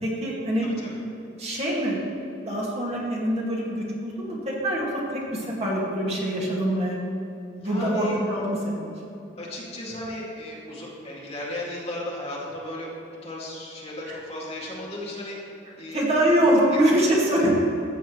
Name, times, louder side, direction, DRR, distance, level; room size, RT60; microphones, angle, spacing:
voice 1, 0.0-0.9 1.4-2.0 2.5-4.9 5.1-7.0 7.6-8.9 14.1-14.2 15.9-17.5, right 1 dB, 35° right, -4 dB, 1.9 m, -24 dB
voice 2, 0.6-1.0 7.6-8.2 9.4-16.0 16.7-17.0 17.3-17.5, left 1 dB, 35° left, -5 dB, 2.2 m, -35 dB
14.5 x 8.1 x 3.1 m, 2.9 s
head